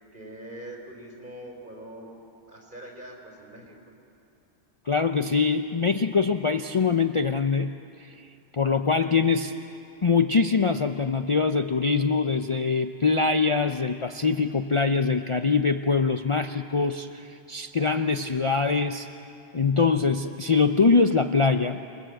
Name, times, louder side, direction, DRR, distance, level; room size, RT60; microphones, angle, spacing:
voice 1, 0.1-2.2 2.5-3.9, right 1 dB, 45° right, 1 dB, 4.2 m, -43 dB
voice 2, 4.9-7.7 8.0-9.5 10.0-19.1 19.5-21.8, left 4 dB, 35° left, 7 dB, 0.6 m, -23 dB
28.0 x 21.5 x 7.7 m, 2.6 s
omnidirectional pair, 1.1 m